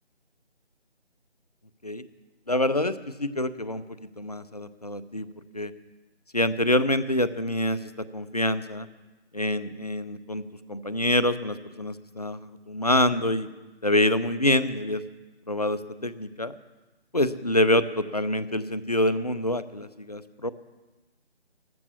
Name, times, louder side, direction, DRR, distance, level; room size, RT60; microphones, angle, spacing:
voice 1, 2.5-3.8 4.2-5.3 5.5-5.7 6.3-8.9 9.3-10.4 10.7-13.5 13.8-15.0 15.5-16.5 17.1-20.5, left 1 dB, 35° left, 15 dB, 0.6 m, -26 dB
14.0 x 13.5 x 7.0 m, 1.2 s
figure-of-eight pair, 155°, 34 cm